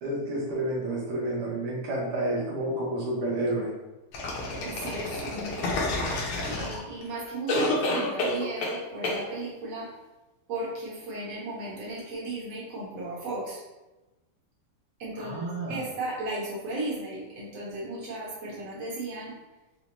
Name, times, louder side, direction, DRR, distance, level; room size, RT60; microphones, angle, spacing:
voice 1, 0.0-3.7 15.2-15.8, right 1 dB, 90° right, -6 dB, 1.8 m, -30 dB
sound 1, 4.1-7.0 7.5-8.8 9.0-9.2, left 1 dB, 85° left, 1.8 m, -29 dB
voice 2, 4.6-9.9 10.5-13.6 15.0-19.3, right 2 dB, 70° right, -7 dB, 2.1 m, -36 dB
5.6 x 2.1 x 2.9 m, 1.1 s
omnidirectional pair, 2.4 m